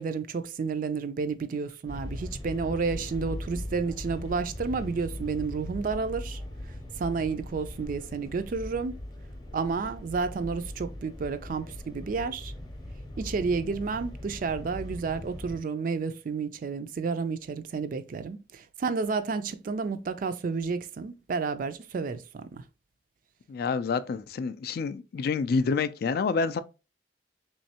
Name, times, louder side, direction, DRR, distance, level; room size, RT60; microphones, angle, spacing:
voice 1, 0.0-6.4 7.0-9.0 9.5-12.5 13.2-22.6, right 4 dB, 50° right, 0.3 m, -31 dB
sound 1, 1.9-15.6, left 1 dB, 20° left, 0.7 m, -40 dB
voice 2, 23.5-26.6, left 5 dB, 55° left, 0.3 m, -28 dB
3.6 x 3.1 x 2.8 m
head